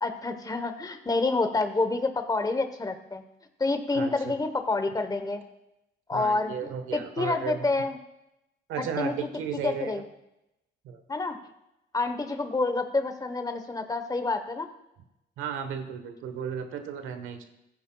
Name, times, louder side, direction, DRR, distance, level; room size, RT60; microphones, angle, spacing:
voice 1, 0.0-3.2 3.6-5.4 6.1-8.0 8.8-9.3 9.6-10.0 11.1-11.4 11.9-14.7, left 3 dB, 20° left, 8 dB, 1.0 m, -28 dB
voice 2, 3.9-4.3 6.1-7.7 8.7-10.0 10.8-11.0 15.4-17.5, right 7 dB, 90° right, 7 dB, 1.2 m, -34 dB
15.5 x 9.6 x 2.3 m, 0.88 s
cardioid pair, 90°, 20 cm